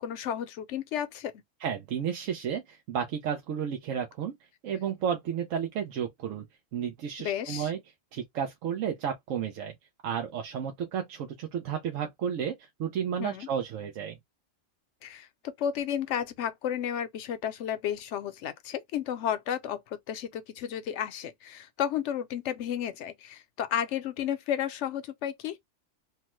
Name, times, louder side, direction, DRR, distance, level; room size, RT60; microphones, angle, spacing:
voice 1, 0.0-1.3 7.2-7.7 13.2-13.5 15.0-25.6, left 9 dB, 70° left, 0.9 m, -32 dB
voice 2, 1.6-4.3 4.6-6.4 6.7-7.8 8.1-9.7 10.0-14.2, right 8 dB, 90° right, 1.1 m, -32 dB
3.3 x 2.1 x 3.0 m
omnidirectional pair, 1.3 m